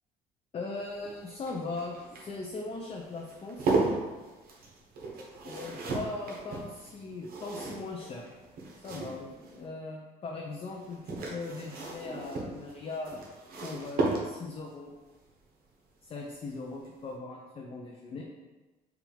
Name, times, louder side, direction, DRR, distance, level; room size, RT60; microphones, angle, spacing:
voice 1, 0.5-3.7 5.4-8.2 8.8-13.2 13.6-14.9 16.0-18.2, left 3 dB, 35° left, -1 dB, 0.6 m, -39 dB
sound 1, 0.8-9.6 10.7-14.7 16.3-16.6 16.9-17.0, right 3 dB, 60° right, 1.1 m, -35 dB
6.2 x 2.5 x 3.4 m, 1.2 s
cardioid pair, 110°, 17 cm